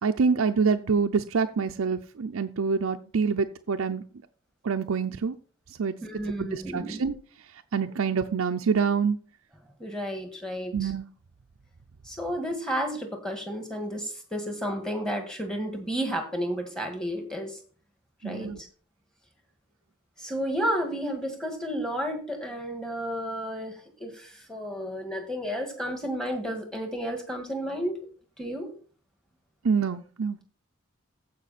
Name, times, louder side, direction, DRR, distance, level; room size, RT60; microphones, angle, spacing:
voice 1, 0.0-4.0 4.6-5.3 5.8-5.9 6.4-7.2 7.7-9.2 10.7-11.1 18.2-18.6 29.6-30.4, right 5 dB, 85° right, 6 dB, 0.5 m, -26 dB
voice 2, 6.0-7.0 9.8-10.9 12.0-17.6 18.2-18.5 20.2-28.0 28.4-28.7, equal, 5° left, 4 dB, 1.7 m, -32 dB
15.0 x 5.3 x 4.1 m, 0.42 s
head